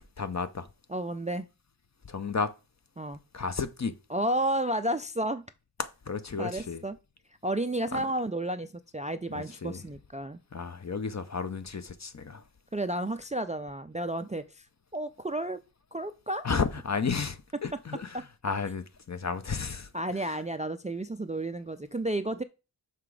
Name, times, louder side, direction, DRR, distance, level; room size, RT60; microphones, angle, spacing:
voice 1, 0.2-0.7 2.1-2.5 3.3-3.9 5.8-6.8 7.9-8.1 9.3-9.8 10.5-12.4 16.4-19.9 20.2-20.4, left 5 dB, 40° left, 0.7 m, -33 dB
voice 2, 0.9-1.5 3.0-3.2 4.1-5.4 6.4-7.0 7.4-10.4 12.7-14.7 14.9-15.6 15.9-16.5 19.9-22.4, right 1 dB, 15° right, 0.4 m, -32 dB
5.9 x 5.8 x 4.8 m
wide cardioid pair, 75°, 45 cm